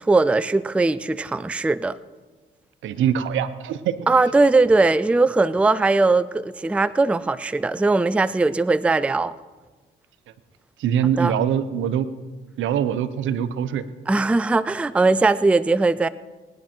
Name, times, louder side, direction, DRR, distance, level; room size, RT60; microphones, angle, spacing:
voice 1, 0.0-2.0 4.1-9.3 11.2-11.3 14.1-16.1, right 3 dB, 5° right, 0.4 m, -19 dB
voice 2, 2.8-3.9 10.8-12.1 12.6-13.8, right 9 dB, 80° right, 0.9 m, -23 dB
19.5 x 10.0 x 4.4 m
cardioid pair, 90°, 20 cm